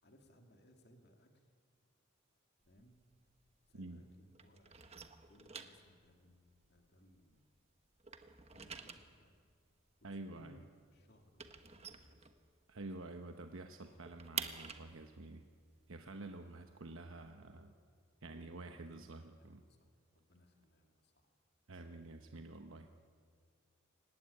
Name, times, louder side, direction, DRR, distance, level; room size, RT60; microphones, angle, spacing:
voice 1, 0.0-1.4 2.7-3.0 3.7-4.8 5.3-7.4 8.5-9.3 10.0-12.2 18.7-19.5 19.8-21.3, equal, 50° left, 4 dB, 2.5 m, -65 dB
sound 1, 2.6-4.1 4.3-7.6 7.9-12.9 13.2-13.3 13.6-17.3, right 7 dB, 30° right, 1.2 m, -49 dB
voice 2, 10.0-10.7 12.7-15.4 15.9-17.7 18.2-19.6 21.7-22.9, right 2 dB, 70° right, 5 dB, 1.1 m, -49 dB
27.0 x 16.0 x 9.9 m, 2.1 s
head